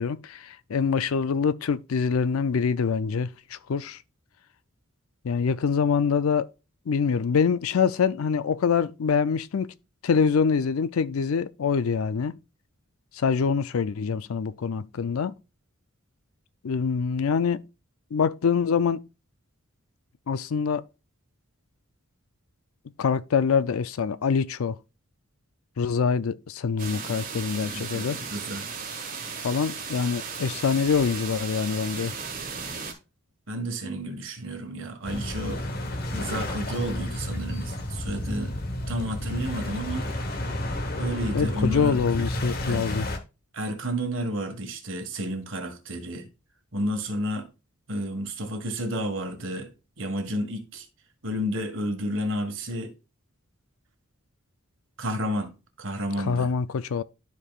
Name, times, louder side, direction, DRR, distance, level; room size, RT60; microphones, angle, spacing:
voice 1, 0.0-4.0 5.2-6.5 6.9-9.7 10.0-12.4 13.1-15.3 16.6-17.6 18.1-19.0 20.3-20.8 23.0-24.8 25.8-28.2 29.4-32.1 41.3-43.1 56.2-57.0, left 6 dB, 80° left, 0.4 m, -25 dB
sound 1, 26.8-32.9, right 5 dB, 40° right, 1.7 m, -36 dB
voice 2, 27.7-28.7 33.5-35.6 36.1-38.5 38.9-40.1 41.0-42.0 42.6-42.8 43.5-46.3 46.7-47.4 47.9-49.7 50.0-50.8 51.2-52.9 55.0-55.5 55.8-56.5, equal, 65° right, 1.6 m, -31 dB
sound 2, 35.0-43.2, left 1 dB, 45° left, 1.1 m, -31 dB
13.0 x 4.7 x 2.4 m
head